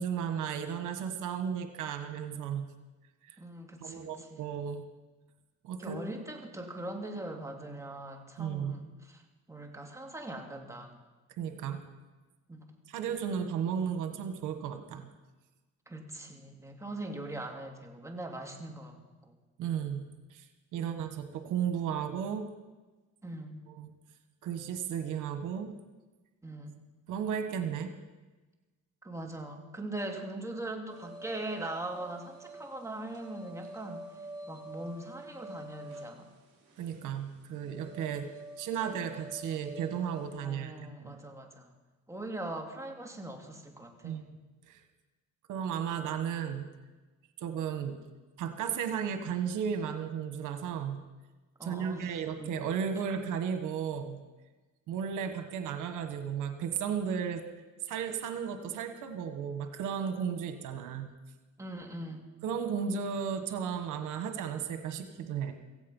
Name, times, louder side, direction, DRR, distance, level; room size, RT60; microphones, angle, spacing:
voice 1, 0.0-2.7 3.3-3.4 3.8-4.8 5.6-6.0 8.4-8.8 11.4-11.8 12.9-15.1 19.6-20.4 20.7-22.5 23.8-23.9 24.4-25.7 27.1-27.9 36.8-38.3 38.6-41.1 44.0-44.2 44.7-44.8 45.5-46.7 47.4-48.0 48.4-51.0 51.6-54.2 54.9-57.4 57.8-61.1 62.4-65.5, right 7 dB, 90° right, 7 dB, 1.4 m, -34 dB
voice 2, 3.4-4.5 5.8-9.2 9.5-11.0 12.5-12.8 15.9-19.3 20.8-20.9 23.2-23.6 26.4-26.8 29.0-34.1 34.5-36.3 40.4-41.7 42.1-44.3 51.6-52.6 61.6-62.3, right 1 dB, 10° right, 2 dB, 2.6 m, -41 dB
sound 1, 30.9-40.3, right 1 dB, 50° right, 5.2 m, -47 dB
16.5 x 15.5 x 5.4 m, 1.2 s
cardioid pair, 90°, 30 cm